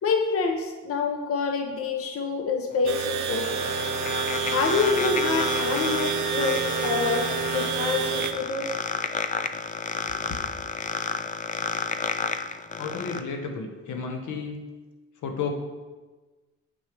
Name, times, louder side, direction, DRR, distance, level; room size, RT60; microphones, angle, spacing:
voice 1, 0.0-3.6 4.5-7.3 7.5-8.7, left 4 dB, 50° left, 3 dB, 0.8 m, -27 dB
sound 1, 2.7-13.2, left 6 dB, 25° left, 0.4 m, -31 dB
sound 2, 2.9-8.3, right 7 dB, 70° right, 0.7 m, -28 dB
voice 2, 12.8-14.7 15.2-15.5, left 5 dB, 75° left, 4 dB, 1.0 m, -32 dB
7.7 x 5.4 x 3.3 m, 1.3 s
cardioid pair, 90°, 30 cm